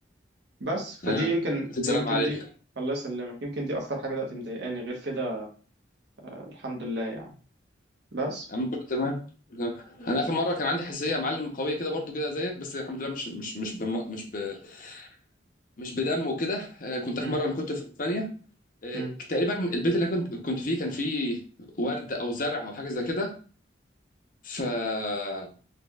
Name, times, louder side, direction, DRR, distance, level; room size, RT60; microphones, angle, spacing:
voice 1, 0.6-2.4 2.8-5.5 6.2-7.3 8.1-8.5 17.2-17.3 18.9-19.1, right 1 dB, 65° right, 1 dB, 1.0 m, -31 dB
voice 2, 1.7-2.4 8.5-9.2 9.5-15.1 15.8-18.3 18.8-21.4 21.8-23.3 24.4-25.5, left 1 dB, 45° left, 3 dB, 0.7 m, -29 dB
4.1 x 2.9 x 2.3 m, 0.38 s
head